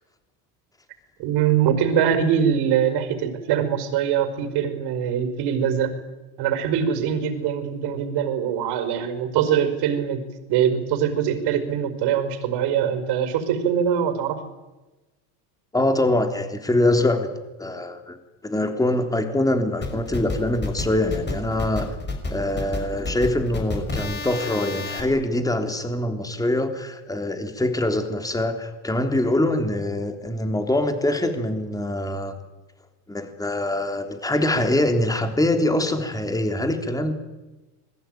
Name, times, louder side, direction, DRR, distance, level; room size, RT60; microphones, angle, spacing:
voice 1, 1.2-5.9 6.4-10.2 10.5-14.4, right 8 dB, 60° right, 10 dB, 5.3 m, -23 dB
voice 2, 15.7-17.3 17.6-18.2 18.4-21.9 22.3-32.3 33.1-37.1, left 1 dB, 10° left, 6 dB, 3.4 m, -24 dB
sound 1, 19.8-25.0, left 2 dB, 25° left, 6.8 m, -30 dB
27.5 x 21.5 x 9.3 m, 1.1 s
supercardioid pair, 130°, 45 cm